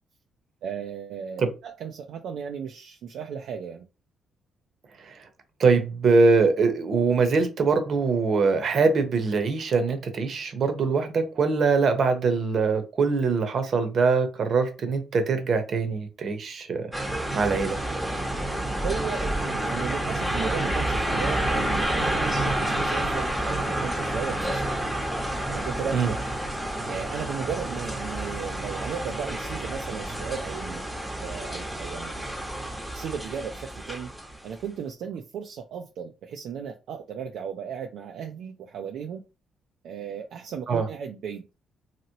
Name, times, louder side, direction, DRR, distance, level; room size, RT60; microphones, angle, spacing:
voice 1, 0.6-3.8 18.8-24.6 25.5-26.2 26.9-30.8 31.2-32.4 32.9-34.1 34.4-39.2 39.8-41.4, right 7 dB, 75° right, 0.4 m, -35 dB
voice 2, 5.6-17.8 25.9-26.1 40.7-40.9, right 4 dB, 55° right, 0.8 m, -23 dB
sound 1, 16.9-34.4, right 1 dB, 5° right, 0.9 m, -29 dB
3.0 x 2.8 x 2.8 m
cardioid pair, 90°, 0 cm